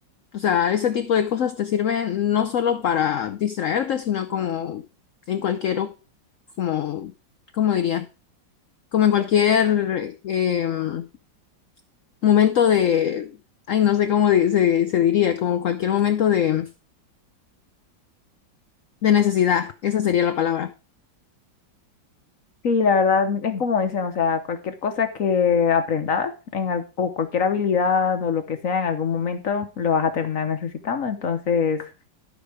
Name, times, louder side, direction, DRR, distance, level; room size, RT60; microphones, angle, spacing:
voice 1, 0.3-4.8 5.3-5.9 6.6-7.1 7.5-8.1 8.9-11.0 12.2-13.3 13.7-16.7 19.0-20.7, left 9 dB, 70° left, 0.7 m, -21 dB
voice 2, 22.6-31.9, left 6 dB, 50° left, 1.2 m, -23 dB
12.5 x 5.2 x 4.8 m
omnidirectional pair, 2.0 m